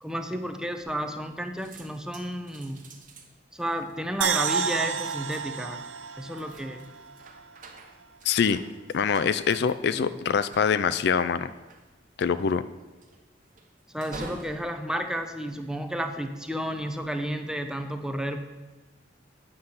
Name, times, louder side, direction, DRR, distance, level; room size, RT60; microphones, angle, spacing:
voice 1, 0.0-2.9 3.5-5.8 6.2-6.9 9.6-10.2 13.9-18.4, equal, 5° right, 6 dB, 0.7 m, -32 dB
sound 1, 0.8-1.3 1.6-16.1 16.7-17.1, right 2 dB, 45° right, 1.2 m, -49 dB
sound 2, 4.2-7.4 7.7-7.8, right 7 dB, 85° right, 0.6 m, -30 dB
voice 2, 8.2-8.6 8.9-11.5 12.2-12.6, left 6 dB, 60° left, 13 dB, 0.4 m, -24 dB
8.7 x 5.6 x 7.9 m, 1.2 s
head